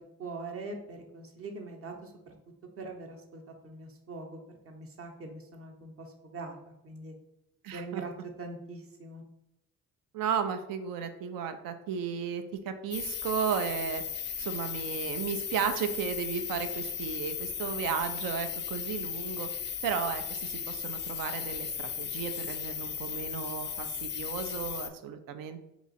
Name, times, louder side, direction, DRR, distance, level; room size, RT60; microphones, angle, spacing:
voice 1, 0.0-2.3 2.8-7.1 7.7-8.1 8.4-9.2, right 3 dB, 40° right, 3 dB, 0.8 m, -43 dB
voice 2, 7.6-8.0 10.1-14.0 14.4-19.5 19.8-25.7, right 7 dB, 75° right, 8 dB, 0.5 m, -34 dB
sound 1, 12.9-24.9, left 8 dB, 35° left, 0.4 m, -36 dB
2.9 x 2.4 x 4.0 m, 0.87 s
supercardioid pair, 75°, 34 cm